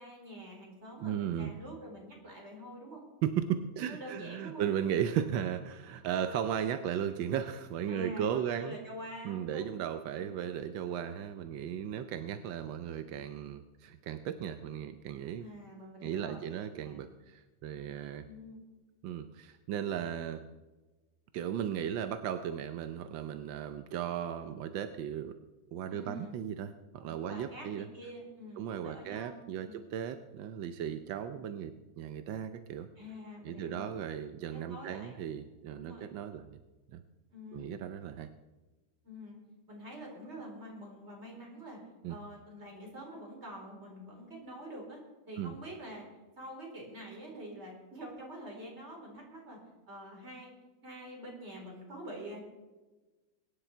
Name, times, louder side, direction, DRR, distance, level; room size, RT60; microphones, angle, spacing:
voice 1, 0.0-3.0 3.8-4.7 7.9-9.8 15.4-16.4 16.8-17.1 18.2-18.6 25.9-26.4 27.0-29.8 33.0-33.9 34.5-35.2 35.7-36.1 37.3-37.7 39.0-39.4 39.7-41.8 42.1-45.0 45.3-46.1 46.4-49.6 49.9-50.5 50.8-52.4, equal, 35° right, -1 dB, 4.6 m, -46 dB
voice 2, 1.0-1.5 3.2-8.8 9.2-15.5 16.0-18.3 19.0-20.4 21.3-25.3 25.7-27.9 28.6-32.9 33.4-36.6 36.9-37.0 37.5-38.3 42.0-42.2 45.4-45.6, right 9 dB, 85° right, 9 dB, 1.5 m, -36 dB
22.5 x 9.9 x 4.5 m, 1.2 s
omnidirectional pair, 2.0 m